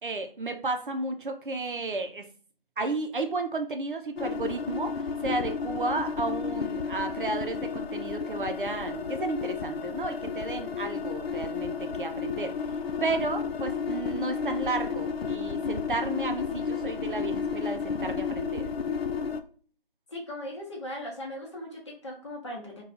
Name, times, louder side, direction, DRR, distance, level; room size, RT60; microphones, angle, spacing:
voice 1, 0.0-2.2 2.8-12.5 13.0-18.6, right 3 dB, 60° right, 6 dB, 0.6 m, -32 dB
sound 1, 4.2-19.4, left 6 dB, 85° left, 0.5 m, -32 dB
voice 2, 20.1-22.8, left 1 dB, 30° left, -1 dB, 0.8 m, -38 dB
2.5 x 2.3 x 4.0 m, 0.44 s
figure-of-eight pair, 155°, 29 cm